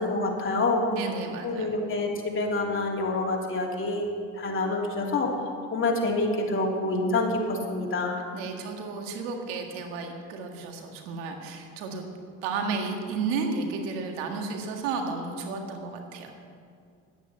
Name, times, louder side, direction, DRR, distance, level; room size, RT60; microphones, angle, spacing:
voice 1, 0.0-0.8 1.4-4.1 4.4-5.3 5.7-8.2, left 2 dB, 35° left, -1 dB, 3.0 m, -27 dB
voice 2, 0.9-1.7 8.3-12.1 12.4-16.3, right 4 dB, 90° right, 3 dB, 1.8 m, -32 dB
11.0 x 9.2 x 8.3 m, 2.3 s
supercardioid pair, 80°, 35 cm